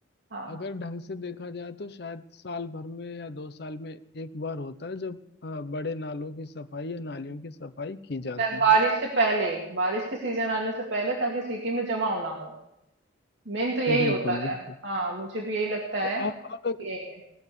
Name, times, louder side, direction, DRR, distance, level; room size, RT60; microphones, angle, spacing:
voice 1, 0.5-8.6 13.9-14.7 16.0-16.9, left 3 dB, 60° left, 11 dB, 0.8 m, -35 dB
voice 2, 8.4-12.5 13.5-14.6 14.8-16.2 16.8-17.0, right 3 dB, 75° right, -2 dB, 2.3 m, -26 dB
19.0 x 7.1 x 9.8 m, 0.85 s
head